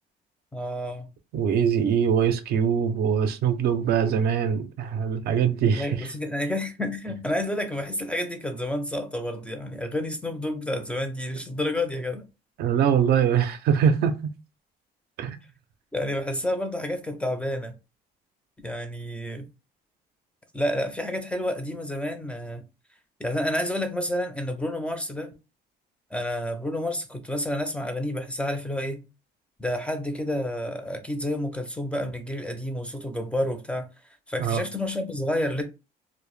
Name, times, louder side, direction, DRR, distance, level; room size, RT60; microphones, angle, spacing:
voice 1, 0.5-1.1 5.7-12.2 15.9-17.7 18.6-19.5 20.5-22.6 23.2-25.3 26.1-29.1 29.6-33.9 34.3-35.6, left 1 dB, 5° left, 0.4 m, -29 dB
voice 2, 1.3-6.0 12.6-14.3 15.2-15.4 34.4-34.6, right 8 dB, 65° right, 0.4 m, -23 dB
2.0 x 2.0 x 3.1 m
cardioid pair, 110°, 17 cm